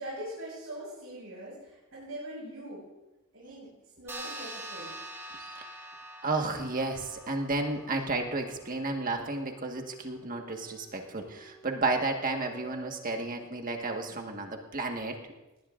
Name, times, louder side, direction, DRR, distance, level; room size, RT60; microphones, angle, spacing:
voice 1, 0.0-2.8 3.3-3.7 4.0-4.9, right 1 dB, 80° right, -6 dB, 5.9 m, -42 dB
sound 1, 4.1-8.9, right 1 dB, 10° right, 1.9 m, -44 dB
voice 2, 6.2-15.2, right 3 dB, 40° right, 3 dB, 1.6 m, -32 dB
sound 2, 9.4-13.2, right 1 dB, 55° left, 4.9 m, -52 dB
19.0 x 18.0 x 2.6 m, 1.0 s
head